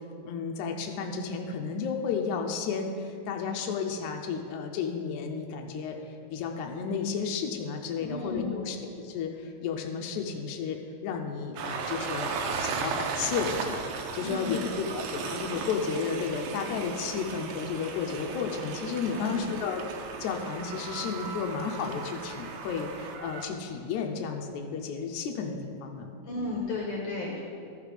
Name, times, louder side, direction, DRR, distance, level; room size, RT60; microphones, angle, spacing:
voice 1, 0.2-19.8 20.2-26.1, left 6 dB, 90° left, 3 dB, 1.7 m, -33 dB
voice 2, 8.0-8.7 14.2-14.7 19.0-19.5 26.3-27.4, left 3 dB, 70° left, -2 dB, 1.4 m, -33 dB
Train, 11.6-23.5, right 5 dB, 85° right, 2.4 m, -36 dB
13.5 x 5.0 x 5.0 m, 2.5 s
omnidirectional pair, 4.1 m